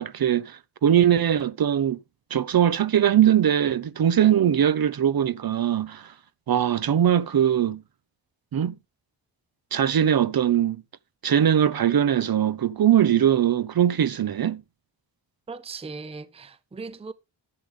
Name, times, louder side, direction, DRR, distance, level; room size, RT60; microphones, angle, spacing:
voice 1, 0.0-2.0 2.3-6.1 6.5-7.8 8.5-8.7 9.7-10.8 11.2-14.6, right 10 dB, 55° right, 0.7 m, -21 dB
voice 2, 15.5-17.1, right 4 dB, 15° right, 0.5 m, -38 dB
11.5 x 7.8 x 3.7 m
wide cardioid pair, 145°, 45 cm